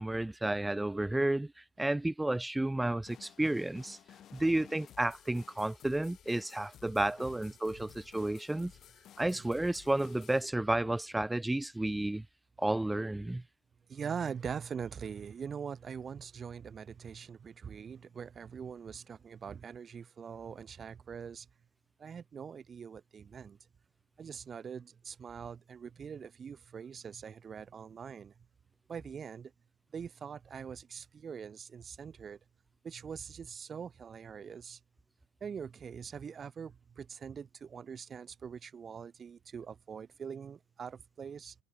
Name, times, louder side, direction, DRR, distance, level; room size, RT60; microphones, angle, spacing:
voice 1, 0.0-1.5 1.8-4.0 4.3-8.7 9.2-12.2 12.6-13.4, right 1 dB, 5° right, 0.7 m, -31 dB
sound 1, 3.1-10.4, left 11 dB, 40° left, 2.2 m, -56 dB
voice 2, 13.9-21.5 22.0-23.6 24.2-28.3 28.9-29.5 29.9-32.4 32.8-34.8 35.4-41.5, right 7 dB, 30° right, 3.3 m, -43 dB
figure-of-eight pair, 65°, 0 cm